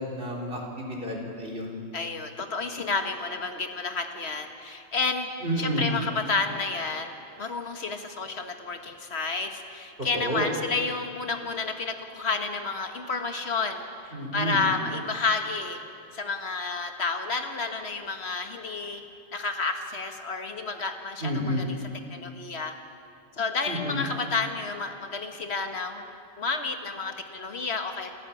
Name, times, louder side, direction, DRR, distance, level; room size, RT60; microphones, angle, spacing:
voice 1, 0.0-1.8 5.4-5.9 10.0-10.5 14.1-14.6 21.2-21.7 23.7-24.0, equal, 50° right, 0 dB, 4.1 m, -30 dB
voice 2, 1.9-5.3 5.6-15.8 16.1-19.0 19.3-21.8 22.1-22.7 23.3-26.1 26.4-28.1, left 4 dB, 65° left, 6 dB, 1.9 m, -30 dB
28.0 x 14.5 x 8.6 m, 2.4 s
omnidirectional pair, 1.2 m